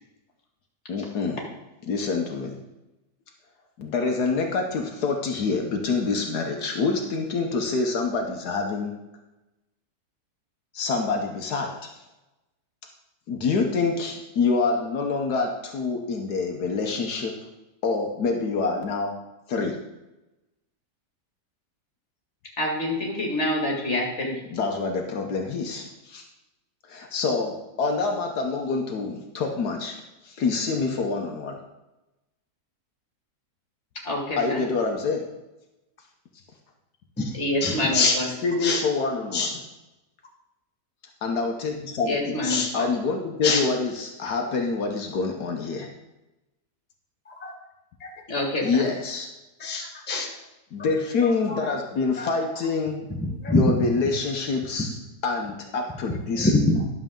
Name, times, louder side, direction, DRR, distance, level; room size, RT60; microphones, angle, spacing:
voice 1, 0.9-1.4 1.9-2.6 3.8-8.9 10.7-11.9 13.3-17.3 17.8-19.2 19.5-19.8 24.5-26.2 26.9-30.0 30.2-31.6 34.4-35.3 38.4-39.6 41.2-42.4 42.7-45.9 48.6-49.3 50.7-53.1 53.5-56.5, left 4 dB, 70° left, 3 dB, 1.4 m, -26 dB
voice 2, 22.6-24.3 34.0-34.6 37.3-38.3 42.1-42.9 48.3-48.8, left 1 dB, 40° left, -1 dB, 2.3 m, -27 dB
voice 3, 37.6-38.1 38.6-38.8 39.3-39.5 42.5-42.7 43.4-43.6 47.3-47.5 49.6-50.3 51.5-51.6 52.2-52.3 53.2-53.6 56.4-56.9, left 3 dB, 10° left, 0 dB, 0.9 m, -24 dB
11.5 x 7.0 x 3.7 m, 0.99 s
omnidirectional pair, 1.8 m